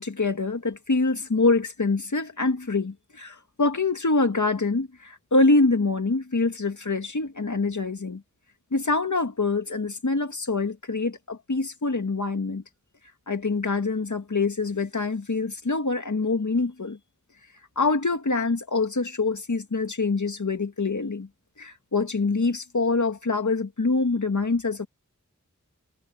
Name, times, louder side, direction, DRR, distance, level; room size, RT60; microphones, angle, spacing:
voice 1, 0.0-8.2 8.7-12.6 13.3-17.0 17.8-21.3 21.6-24.9, left 3 dB, 75° left, 2.2 m, -25 dB
wide cardioid pair, 55°, 30 cm